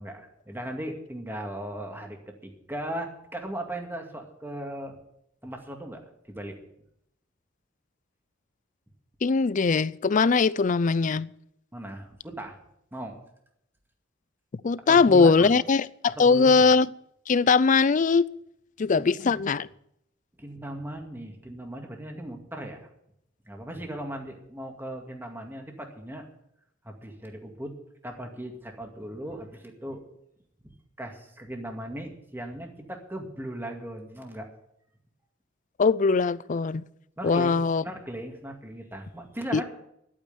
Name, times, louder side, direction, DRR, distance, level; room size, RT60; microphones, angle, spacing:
voice 1, 0.0-5.0 5.4-6.6 11.7-12.6 12.9-13.2 14.8-15.6 16.1-16.7 18.9-19.4 20.4-22.9 23.5-26.3 26.8-27.7 28.0-30.0 30.6-34.5 37.2-39.6, right 1 dB, 10° right, 2.1 m, -38 dB
voice 2, 9.2-11.3 14.6-16.9 17.3-18.3 18.8-19.7 35.8-36.9 37.2-37.8 39.5-39.6, left 4 dB, 40° left, 0.4 m, -21 dB
11.5 x 8.8 x 9.4 m
head